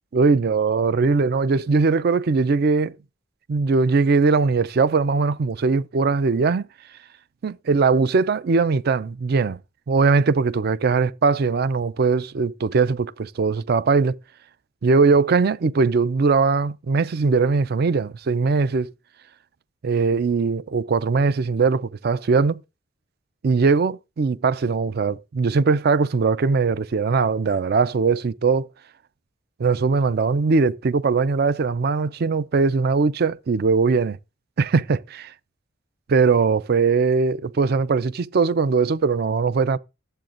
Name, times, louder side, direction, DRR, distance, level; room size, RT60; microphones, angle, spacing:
voice 1, 0.1-2.9 3.5-6.7 7.4-9.6 9.9-14.2 14.8-18.9 19.8-22.6 23.4-28.7 29.6-34.2 34.6-35.3 36.1-39.8, right 4 dB, 55° right, 0.4 m, -20 dB
12.0 x 7.8 x 2.5 m
head